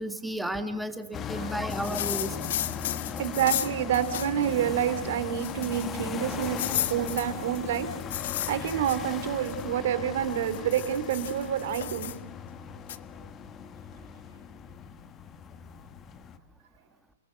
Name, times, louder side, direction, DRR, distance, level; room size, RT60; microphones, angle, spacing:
voice 1, 0.0-2.4, equal, ahead, 8 dB, 1.8 m, -33 dB
sound 1, 1.1-16.4, left 7 dB, 20° left, 1.3 m, -38 dB
sound 2, 1.7-4.5 4.9-5.0 5.4-6.0 6.4-9.6 10.2-12.2 12.9-13.0, left 12 dB, 60° left, 1.3 m, -34 dB
voice 2, 3.2-6.6 6.9-7.9 8.2-12.1, right 10 dB, 55° right, 11 dB, 3.1 m, -28 dB
29.5 x 19.5 x 8.0 m, 0.86 s
hypercardioid pair, 155°, 0 cm